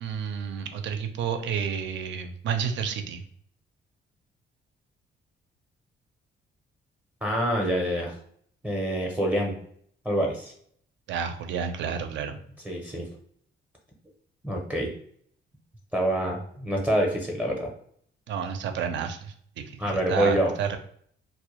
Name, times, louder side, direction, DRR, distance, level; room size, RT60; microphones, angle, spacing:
voice 1, 0.0-3.2 11.1-12.4 18.3-20.8, right 7 dB, 70° right, 7 dB, 0.4 m, -30 dB
voice 2, 7.2-8.1 8.6-9.6 10.0-10.5 12.6-13.1 14.4-14.9 15.9-17.7 19.8-20.5, right 1 dB, 5° right, -1 dB, 0.5 m, -26 dB
2.1 x 2.0 x 2.9 m, 0.62 s
cardioid pair, 90°, 20 cm